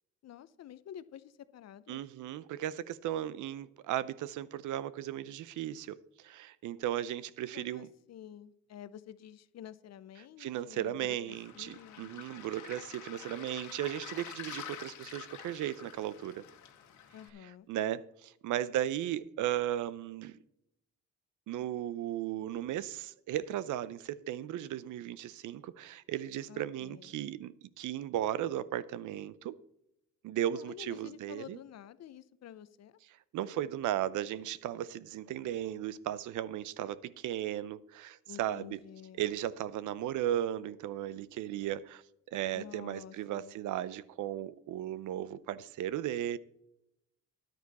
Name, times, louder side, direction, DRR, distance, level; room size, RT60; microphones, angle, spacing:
voice 1, 0.2-2.0 7.5-12.1 17.1-17.7 26.5-27.2 30.5-33.0 38.3-39.3 42.5-43.5, left 10 dB, 60° left, 0.7 m, -50 dB
voice 2, 1.9-7.9 10.4-16.4 17.4-20.4 21.5-29.5 30.2-31.6 33.3-38.8 39.2-46.4, right 12 dB, 80° right, 0.6 m, -36 dB
Waves surf, 11.3-17.3, left 9 dB, 75° left, 1.7 m, -48 dB
10.5 x 9.3 x 4.1 m
cardioid pair, 90°, 30 cm